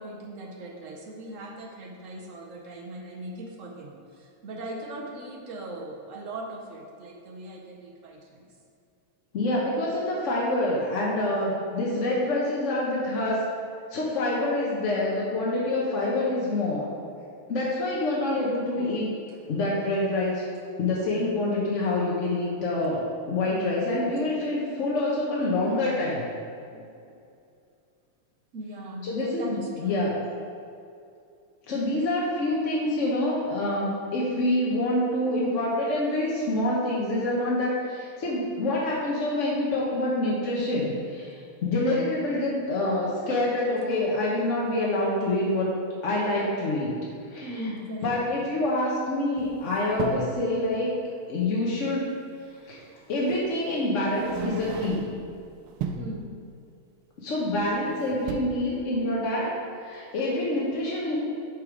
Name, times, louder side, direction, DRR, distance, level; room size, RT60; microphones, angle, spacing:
voice 1, 0.0-8.5 26.7-27.2 28.5-30.0 47.4-48.1 55.8-56.4, right 1 dB, 65° right, 0 dB, 0.8 m, -39 dB
voice 2, 9.3-13.4 13.9-16.9 17.5-19.1 19.5-20.4 20.8-26.3 29.0-30.2 31.7-41.3 41.6-45.7 46.0-46.9 47.3-47.5 48.0-52.1 52.6-52.8 53.1-55.0 57.2-59.5 59.8-61.2, left 1 dB, 50° left, -5 dB, 0.9 m, -26 dB
sound 1, 49.4-50.4 52.1-52.2 53.3-53.5 54.1-55.3 55.7-56.2 57.5-57.9 58.1-58.4, right 6 dB, 85° right, 1.5 m, -34 dB
6.5 x 4.8 x 5.0 m, 2.5 s
omnidirectional pair, 2.4 m